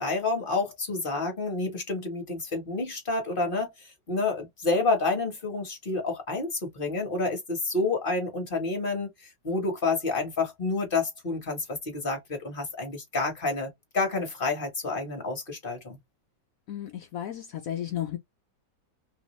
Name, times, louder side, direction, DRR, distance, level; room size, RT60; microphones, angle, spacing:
voice 1, 0.0-16.0, left 3 dB, 35° left, 1.2 m, -29 dB
voice 2, 16.7-18.2, left 11 dB, 70° left, 0.8 m, -33 dB
3.0 x 2.6 x 3.0 m
omnidirectional pair, 1.9 m